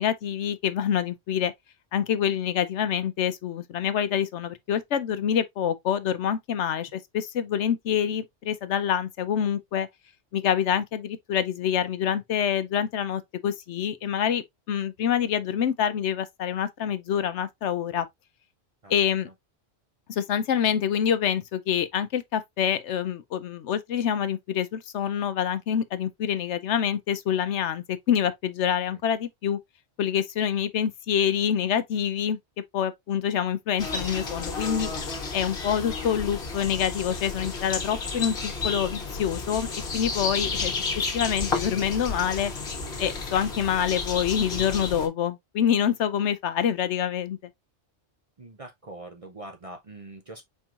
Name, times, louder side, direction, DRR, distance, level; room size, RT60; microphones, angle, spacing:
voice 1, 0.0-1.5 1.9-9.9 10.3-18.1 18.9-19.3 20.1-29.6 30.0-32.4 32.7-34.9 35.3-40.7 41.1-42.5 43.0-47.4, left 9 dB, 70° left, 0.9 m, -26 dB
sound 1, 33.8-45.1, left 4 dB, 55° left, 1.3 m, -32 dB
voice 2, 48.4-50.4, right 2 dB, 40° right, 0.5 m, -43 dB
4.6 x 4.5 x 2.4 m
omnidirectional pair, 1.2 m